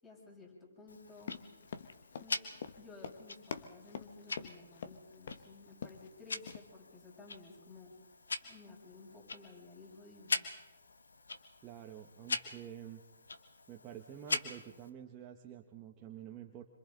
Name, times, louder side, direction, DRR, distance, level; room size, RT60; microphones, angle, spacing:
voice 1, 0.0-1.4 2.2-2.4 2.8-7.9 8.4-10.5, left 3 dB, 15° left, -3 dB, 7.7 m, -55 dB
Tick-tock, 0.9-14.9, left 3 dB, 80° left, 1.6 m, -43 dB
Run, 1.2-5.0 5.3-5.5 5.7-6.1 6.5-6.6, left 7 dB, 55° left, 1.4 m, -45 dB
voice 2, 11.6-13.0 13.7-16.6, right 10 dB, 20° right, 1 dB, 1.4 m, -49 dB
27.0 x 25.5 x 4.0 m, 1.1 s
hypercardioid pair, 145°, 0 cm